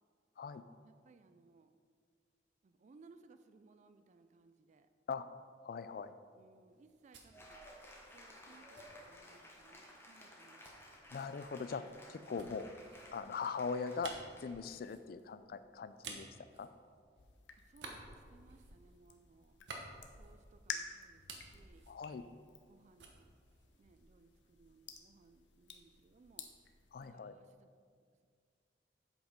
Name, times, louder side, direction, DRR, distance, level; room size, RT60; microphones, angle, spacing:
voice 1, 0.8-1.8 2.6-4.9 6.3-7.7 8.1-10.7 17.6-19.6 20.1-21.9 22.7-23.3 23.8-26.5 27.0-27.7, right 4 dB, 40° right, 9 dB, 0.3 m, -64 dB
voice 2, 5.6-6.2 11.1-11.8 12.1-12.7 13.1-14.1 14.4-16.3 16.6-16.7 21.9-22.2 26.9-27.3, left 5 dB, 55° left, 13 dB, 0.4 m, -41 dB
sound 1, 6.7-9.7 10.6-17.3 17.7-20.7 21.0-22.7 23.0-24.3, right 3 dB, 70° right, 1.0 m, -54 dB
Cheering / Applause, 7.3-14.9, left 1 dB, 15° left, 1.1 m, -56 dB
sound 2, 17.2-27.1, left 6 dB, 85° left, 0.7 m, -52 dB
8.0 x 5.1 x 5.1 m, 2.1 s
head